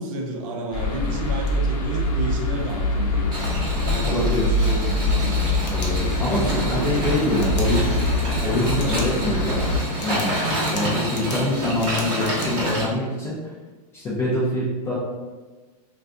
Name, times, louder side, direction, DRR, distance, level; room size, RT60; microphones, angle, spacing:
voice 1, 0.0-3.4 3.8-5.4 6.3-6.9, right 2 dB, 55° right, 1 dB, 0.6 m, -30 dB
sound 1, 0.7-9.8, left 1 dB, 60° left, 0.8 m, -24 dB
sound 2, 3.3-12.8, right 1 dB, 20° right, 0.8 m, -28 dB
voice 2, 4.0-4.5 5.7-7.9 8.4-9.7 10.0-10.4 10.7-13.5 13.9-14.9, left 1 dB, 15° left, -8 dB, 0.3 m, -25 dB
sound 3, 5.6-6.5 7.4-7.7 8.7-9.1 9.5-9.6 10.0-12.5, left 3 dB, 90° left, 0.7 m, -39 dB
2.5 x 2.3 x 3.6 m, 1.3 s
supercardioid pair, 160°, 21 cm